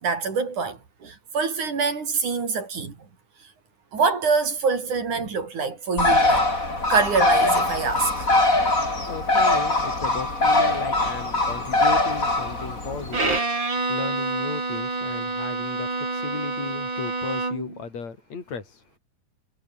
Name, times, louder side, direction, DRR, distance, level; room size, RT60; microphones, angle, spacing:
voice 1, 0.0-3.0 3.9-6.5 6.9-8.3, right 5 dB, 45° right, 5.5 m, -25 dB
Bird, 6.0-13.4, left 2 dB, 20° left, 6.0 m, -22 dB
voice 2, 8.7-18.8, left 5 dB, 40° left, 6.3 m, -36 dB
Bowed string instrument, 13.1-17.8, right 3 dB, 25° right, 6.1 m, -27 dB
omnidirectional pair, 5.0 m